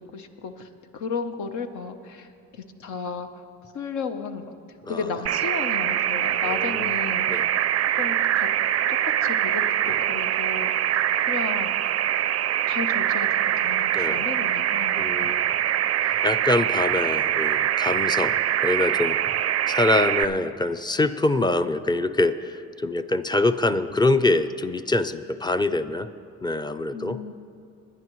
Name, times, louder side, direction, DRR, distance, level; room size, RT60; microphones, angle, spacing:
voice 1, 0.0-3.4 3.7-4.5 4.9-7.4 7.9-8.5 8.9-10.7 11.0-11.7 12.7-15.7 16.0-16.1 26.9-27.3, left 5 dB, 75° left, 7 dB, 1.0 m, -34 dB
sound 1, 5.3-20.2, right 11 dB, 55° right, 0.4 m, -24 dB
voice 2, 6.4-7.0 7.3-7.5 9.9-10.2 13.9-14.3 15.0-15.5 16.2-19.4 19.7-26.1 26.4-27.2, left 2 dB, 15° left, 10 dB, 0.5 m, -25 dB
22.0 x 10.0 x 3.1 m, 2.4 s
cardioid pair, 90°, 30 cm